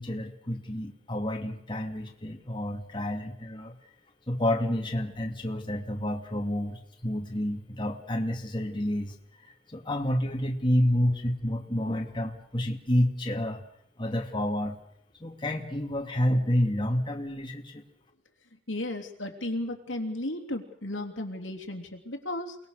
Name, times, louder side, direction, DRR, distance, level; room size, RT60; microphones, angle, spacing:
voice 1, 0.0-3.7 4.3-9.1 9.4-13.6 14.0-14.8 15.2-17.8, left 1 dB, 25° left, 1 dB, 2.7 m, -29 dB
voice 2, 18.7-22.6, left 1 dB, 80° left, 4 dB, 3.2 m, -34 dB
29.0 x 20.5 x 6.7 m, 0.70 s
head